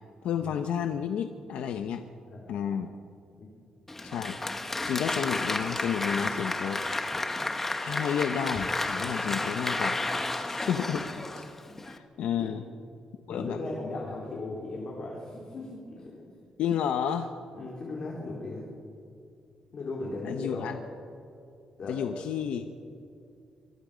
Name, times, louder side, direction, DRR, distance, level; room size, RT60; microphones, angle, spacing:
voice 1, 0.2-2.0 2.5-2.9 4.0-4.4 4.9-6.8 7.8-10.0 10.3-11.1 11.3-11.4 11.8-12.6 13.3-13.6 16.6-17.3 20.2-20.8 21.9-22.6, left 8 dB, 85° left, 6 dB, 1.0 m, -31 dB
voice 2, 2.3-2.6 3.4-3.5 12.4-12.5 13.3-16.3 17.5-18.7 19.7-20.8 21.8-22.2, left 2 dB, 45° left, -3 dB, 4.2 m, -37 dB
Applause, 3.9-12.0, left 2 dB, 15° left, 1.3 m, -32 dB
25.5 x 23.0 x 5.2 m, 2.5 s
cardioid pair, 155°, 2 cm